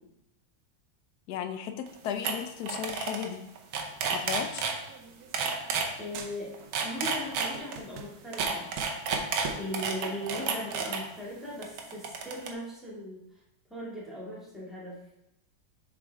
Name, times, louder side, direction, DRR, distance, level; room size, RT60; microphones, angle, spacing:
voice 1, 1.3-3.4 4.1-4.7, left 9 dB, 75° left, 7 dB, 0.9 m, -35 dB
sound 1, 1.9-2.0 2.2-2.3 2.6-3.3 3.6-4.7 5.3-5.9 6.5-7.8 8.3-11.0 11.6-12.5, right 5 dB, 85° right, 1.6 m, -30 dB
sound 2, 4.5-5.9 6.1-6.8 7.1-9.8, right 5 dB, 65° right, 1.0 m, -42 dB
voice 2, 6.0-8.7 9.6-13.2 13.7-15.0, equal, ahead, -6 dB, 1.9 m, -38 dB
7.1 x 5.1 x 3.4 m, 0.86 s
omnidirectional pair, 2.1 m